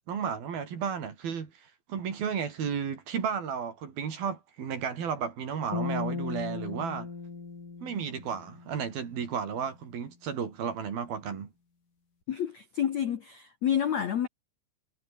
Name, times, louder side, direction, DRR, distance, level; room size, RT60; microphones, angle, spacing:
voice 1, 0.1-7.1 7.8-11.5, right 7 dB, 55° right, 5.0 m, -33 dB
sound 1, 5.7-9.1, left 4 dB, 45° left, 7.5 m, -36 dB
voice 2, 12.3-14.3, left 9 dB, 65° left, 1.8 m, -29 dB
omnidirectional pair, 5.3 m